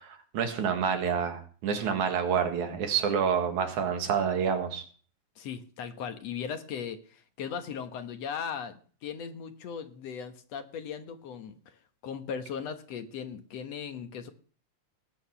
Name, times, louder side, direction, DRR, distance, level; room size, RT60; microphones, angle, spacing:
voice 1, 0.0-4.8, right 7 dB, 85° right, 5 dB, 3.3 m, -28 dB
voice 2, 5.4-11.6 12.0-14.3, left 7 dB, 65° left, 8 dB, 2.3 m, -38 dB
19.0 x 9.1 x 5.9 m, 0.43 s
omnidirectional pair, 3.3 m